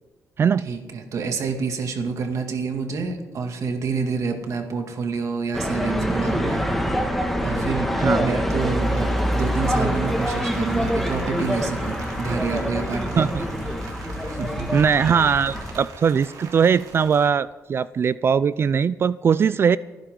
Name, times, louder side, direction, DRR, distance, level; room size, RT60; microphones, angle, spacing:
voice 1, 0.6-6.6 7.4-7.9 8.2-13.3 14.3-14.7, right 5 dB, 65° right, 4 dB, 2.4 m, -28 dB
sound 1, 5.5-15.8, equal, ahead, 1.9 m, -25 dB
Rain, 8.6-17.3, right 4 dB, 85° right, 3.3 m, -43 dB
voice 2, 14.7-19.8, right 6 dB, 45° right, 17 dB, 0.3 m, -20 dB
29.5 x 10.5 x 3.8 m, 1.3 s
cardioid pair, 125°, 6 cm